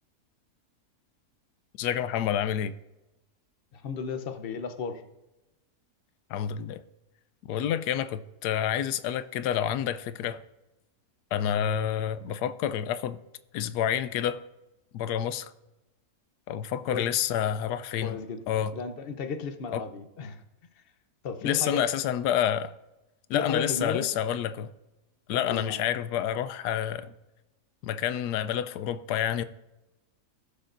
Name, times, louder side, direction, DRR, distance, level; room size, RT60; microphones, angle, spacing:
voice 1, 1.8-2.7 6.3-6.8 7.5-10.4 11.3-13.2 13.5-14.4 14.9-15.5 16.5-18.2 18.5-18.7 19.7-19.8 21.4-22.7 23.3-24.7 25.3-27.1 27.8-29.4, left 10 dB, 90° left, 1.1 m, -28 dB
voice 2, 3.7-5.0 16.8-17.1 18.0-18.4 18.7-20.4 21.2-21.9 23.3-24.1 25.3-25.8, left 5 dB, 50° left, 0.8 m, -34 dB
17.0 x 6.5 x 2.6 m
omnidirectional pair, 1.7 m